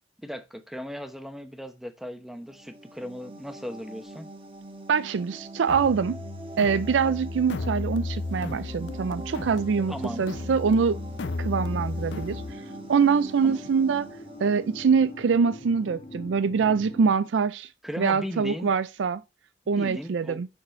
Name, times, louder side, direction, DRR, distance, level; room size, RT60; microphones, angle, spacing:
voice 1, 0.2-4.3 9.9-10.3 13.4-13.6 17.8-18.7 19.8-20.4, equal, ahead, 0.9 m, -37 dB
sound 1, 2.3-15.9, right 2 dB, 30° right, 1.1 m, -44 dB
voice 2, 4.9-6.2 6.6-11.0 11.4-12.4 12.9-14.1 14.4-17.7 18.0-19.2 19.7-20.5, right 5 dB, 90° right, 0.4 m, -24 dB
sound 2, 5.7-12.5, left 3 dB, 70° left, 0.6 m, -34 dB
sound 3, 8.4-17.1, left 1 dB, 30° left, 0.8 m, -45 dB
7.0 x 6.1 x 4.3 m
head